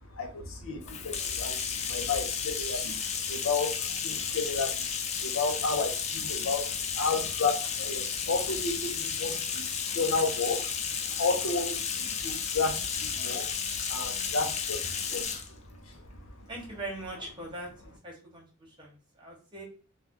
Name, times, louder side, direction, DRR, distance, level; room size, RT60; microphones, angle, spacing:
voice 1, 0.1-4.8 5.2-10.7 11.0-16.0, left 4 dB, 65° left, 4 dB, 0.7 m, -32 dB
Bathtub (filling or washing), 0.8-15.5, left 7 dB, 30° left, 0.3 m, -33 dB
voice 2, 16.5-19.6, right 2 dB, 20° right, -1 dB, 1.1 m, -41 dB
2.7 x 2.3 x 3.6 m, 0.36 s
head